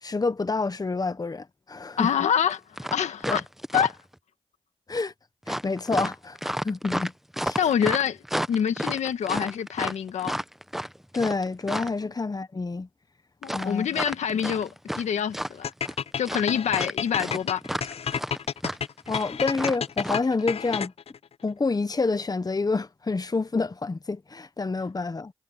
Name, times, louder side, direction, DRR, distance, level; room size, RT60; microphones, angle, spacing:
voice 1, 0.0-2.1 3.3-3.4 4.9-5.1 5.5-7.1 7.4-7.6 11.1-12.9 13.5-14.0 19.1-20.9 21.4-25.3, left 3 dB, 35° left, 1.1 m, -28 dB
voice 2, 2.0-2.6 2.9-3.4 3.7-3.9 7.6-8.2 8.5-10.3 12.0-12.1 13.4-14.7 15.0-15.7 16.2-17.6, left 8 dB, 90° left, 1.7 m, -26 dB
Diverse Jogging Snow, 2.5-2.6 2.8-4.1 5.5-12.0 13.4-15.0 15.3-16.0 16.3-20.2, equal, 5° right, 0.8 m, -31 dB
sound 1, 15.6-21.2, left 7 dB, 60° left, 0.5 m, -30 dB
cardioid pair, 50°, 11 cm